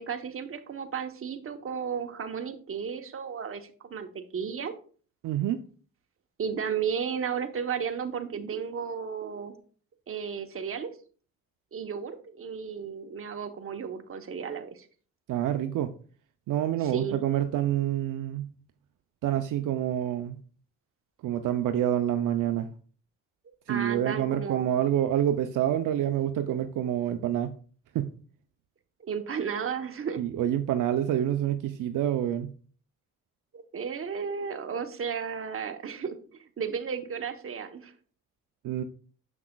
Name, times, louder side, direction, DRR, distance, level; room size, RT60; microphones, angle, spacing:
voice 1, 0.0-4.7 6.4-9.5 10.1-10.9 11.7-14.9 16.8-17.2 23.7-24.9 29.0-30.2 33.5-37.9, right 6 dB, 40° right, 7 dB, 1.0 m, -34 dB
voice 2, 5.2-5.6 15.3-15.9 16.5-18.5 19.2-20.4 21.2-22.7 23.7-27.5 27.9-28.1 30.2-32.5 38.6-38.8, right 11 dB, 70° right, 8 dB, 0.6 m, -27 dB
7.0 x 6.0 x 2.3 m, 0.42 s
cardioid pair, 75°, 32 cm